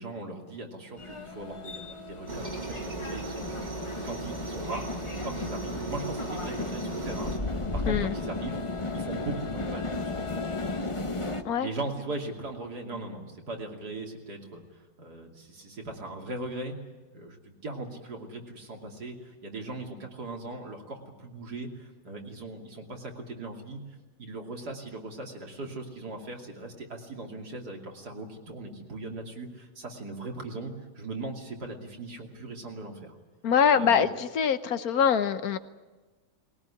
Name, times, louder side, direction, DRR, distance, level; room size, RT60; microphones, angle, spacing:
voice 1, 0.0-3.7 4.0-8.6 8.9-10.5 11.6-14.6 15.0-16.7 17.1-17.4 17.6-23.8 24.2-33.1 33.7-34.1, right 2 dB, 80° right, 2 dB, 3.4 m, -39 dB
sound 1, 1.0-11.4, left 2 dB, 20° left, 1.2 m, -35 dB
Aircraft, 2.3-7.4, right 2 dB, 25° right, 2.1 m, -37 dB
voice 2, 7.9-8.2 11.4-11.7 33.4-35.6, left 7 dB, 70° left, 12 dB, 1.4 m, -24 dB
20.5 x 18.5 x 9.9 m, 1.2 s
omnidirectional pair, 1.7 m